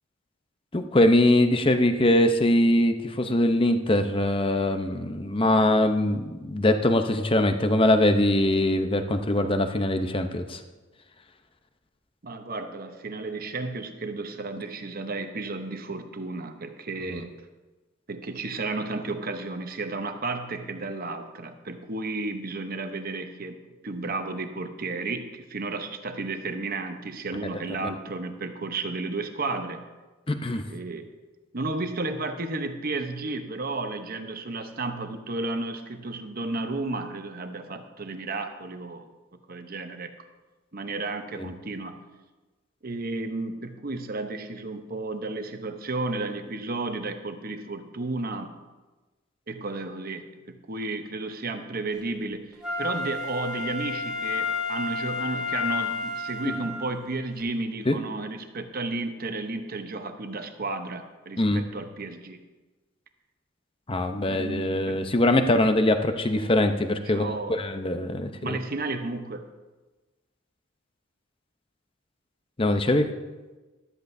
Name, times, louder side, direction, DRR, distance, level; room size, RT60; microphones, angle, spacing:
voice 1, 0.7-10.6 27.8-27.9 30.3-30.6 41.4-41.5 57.9-58.0 61.4-61.6 63.9-68.6 72.6-73.1, left 1 dB, 25° left, 7 dB, 0.7 m, -22 dB
voice 2, 12.2-17.3 18.1-29.8 30.7-31.1 31.5-39.1 39.5-40.1 40.7-42.0 42.8-48.5 49.5-62.4 64.3-65.0 67.0-67.6 68.4-69.5, right 3 dB, 45° right, 7 dB, 0.9 m, -33 dB
Wind instrument woodwind instrument, 52.6-56.9 57.4-57.5, left 4 dB, 5° right, 1.9 m, -30 dB
13.5 x 13.0 x 2.7 m, 1.2 s
head